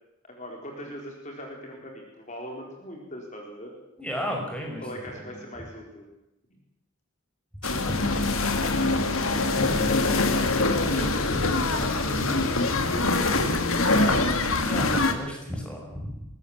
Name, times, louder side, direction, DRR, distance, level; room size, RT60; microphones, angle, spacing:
voice 1, 0.3-3.7 4.8-6.0 9.3-11.3 13.8-14.2, equal, 35° left, 0 dB, 4.3 m, -40 dB
voice 2, 4.0-4.8 5.1-5.4 7.6-8.5 8.8-8.9 9.6-10.3 10.7-13.5 14.6-16.3, equal, 5° left, 0 dB, 5.6 m, -35 dB
sound 1, 7.6-15.1, left 2 dB, 85° left, 2.4 m, -24 dB
22.5 x 19.5 x 7.4 m, 0.86 s
head